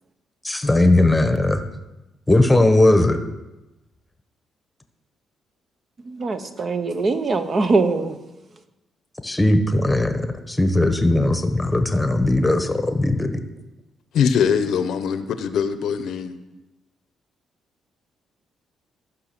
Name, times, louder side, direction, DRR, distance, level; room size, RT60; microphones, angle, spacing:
voice 1, 0.4-1.6 2.3-3.2 9.2-13.4, left 1 dB, 10° left, 1.1 m, -18 dB
voice 2, 6.1-8.2, right 3 dB, 40° right, 0.9 m, -22 dB
voice 3, 14.1-16.3, left 7 dB, 75° left, 0.7 m, -22 dB
13.5 x 5.9 x 6.0 m
cardioid pair, 90°, 0 cm